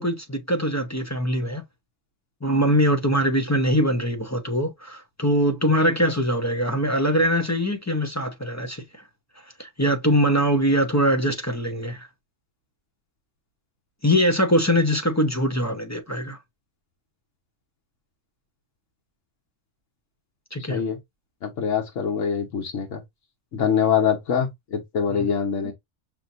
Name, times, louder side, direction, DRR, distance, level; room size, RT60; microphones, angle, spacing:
voice 1, 0.0-1.6 2.4-9.0 9.6-12.1 14.0-16.4 20.5-20.8 25.1-25.3 25.6-25.7, equal, 15° left, 0.7 m, -22 dB
voice 2, 20.6-21.0 21.4-23.0 23.5-25.7, left 7 dB, 80° left, 1.4 m, -24 dB
5.9 x 2.7 x 2.5 m
omnidirectional pair, 1.3 m